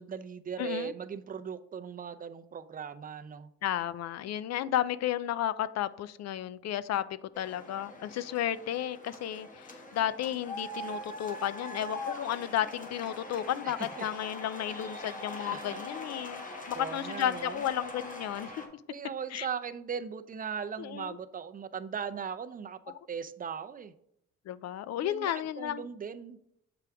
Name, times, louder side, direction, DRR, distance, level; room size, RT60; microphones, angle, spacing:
voice 1, 0.0-3.5 13.6-13.9 14.7-14.8 15.4-15.8 16.2-17.6 18.9-23.9 25.0-26.4, right 7 dB, 30° right, 10 dB, 0.5 m, -39 dB
voice 2, 0.6-0.9 3.6-18.8 19.3-19.5 20.8-21.2 22.9-23.0 24.5-25.8, left 11 dB, 60° left, 16 dB, 0.4 m, -33 dB
sound 1, 7.3-18.7, left 1 dB, 25° left, 1.3 m, -42 dB
6.8 x 4.8 x 3.4 m, 0.74 s
cardioid pair, 90°, 30 cm